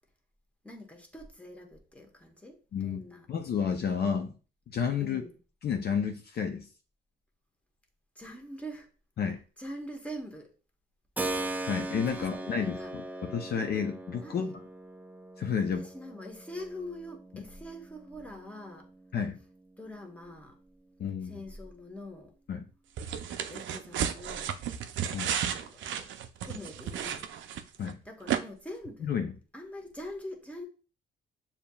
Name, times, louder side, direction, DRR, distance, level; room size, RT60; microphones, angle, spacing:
voice 1, 0.6-3.3 5.0-5.4 8.1-8.9 9.6-10.6 12.1-12.9 13.2-13.3 14.2-14.6 15.6-18.9 19.8-20.6 21.2-22.3 23.5-24.6 25.4-26.1 26.4-27.3 27.8-29.1 29.5-30.6, left 1 dB, 5° left, 1.1 m, -44 dB
voice 2, 3.3-4.3 4.7-5.2 5.6-6.7 9.2-9.4 11.6-12.8 13.2-14.5 15.4-15.8 19.1-19.4 21.0-21.3 22.5-22.6 25.1-25.3 27.8-28.0 29.1-29.3, left 7 dB, 55° left, 0.6 m, -30 dB
Keyboard (musical), 11.2-19.8, right 2 dB, 10° right, 0.4 m, -40 dB
sound 1, 23.0-27.9 28.3-28.4, right 9 dB, 70° right, 0.5 m, -33 dB
6.8 x 2.8 x 2.3 m
cardioid pair, 90°, 20 cm